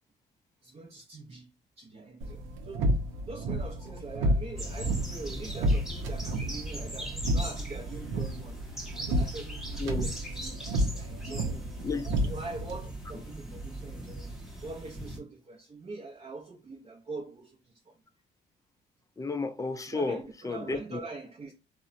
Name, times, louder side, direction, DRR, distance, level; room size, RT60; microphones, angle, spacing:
voice 1, 0.6-3.0 3.2-11.6 12.2-18.0 19.9-21.5, right 3 dB, 35° right, 0.5 m, -43 dB
sound 1, 2.2-12.8, right 1 dB, 85° right, 0.6 m, -31 dB
sound 2, 4.6-15.2, right 1 dB, ahead, 0.8 m, -39 dB
voice 2, 9.8-10.1 11.3-12.1 19.2-20.2 20.4-21.0, left 3 dB, 15° left, 0.4 m, -33 dB
2.8 x 2.1 x 2.4 m
cardioid pair, 75°, 20 cm